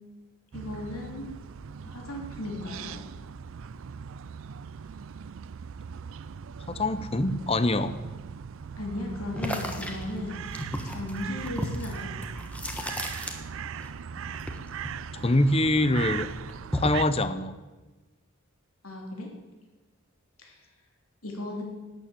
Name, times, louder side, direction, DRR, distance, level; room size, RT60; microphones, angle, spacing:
voice 1, 0.5-1.3 1.8-3.0 8.8-10.4 10.8-12.1 18.8-19.3 20.4-20.6 21.2-21.6, left 2 dB, 75° left, 0 dB, 3.4 m, -36 dB
sound 1, 0.5-17.0, right 7 dB, 60° right, 0.4 m, -39 dB
voice 2, 6.7-7.9 15.1-16.3 16.7-17.5, left 1 dB, 25° left, 13 dB, 0.7 m, -24 dB
sound 2, 9.4-13.9 14.1-15.8 16.1-17.1, equal, 5° left, 1.2 m, -34 dB
11.5 x 9.6 x 8.4 m, 1.2 s
head